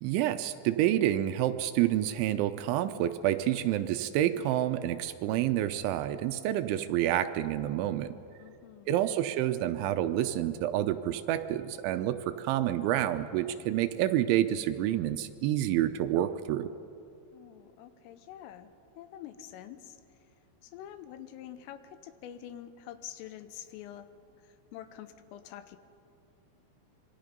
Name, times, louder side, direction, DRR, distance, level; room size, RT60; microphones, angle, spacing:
voice 1, 0.0-8.1 8.9-16.7, right 12 dB, 80° right, 10 dB, 2.9 m, -28 dB
voice 2, 8.4-9.0 17.3-20.0 20.6-24.1 24.4-25.8, left 11 dB, 85° left, 11 dB, 3.5 m, -46 dB
26.5 x 23.0 x 5.3 m, 2.6 s
omnidirectional pair, 5.7 m